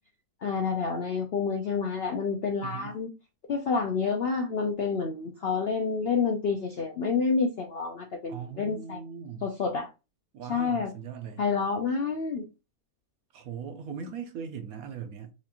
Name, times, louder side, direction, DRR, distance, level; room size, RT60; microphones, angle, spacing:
voice 1, 0.4-3.1 3.5-9.0 9.4-9.9 10.5-10.9 11.4-12.4, left 5 dB, 65° left, 0.6 m, -28 dB
voice 2, 2.6-3.0 8.3-9.5 10.3-11.4 13.3-15.3, right 7 dB, 70° right, 1.1 m, -39 dB
4.6 x 2.5 x 2.9 m
omnidirectional pair, 1.7 m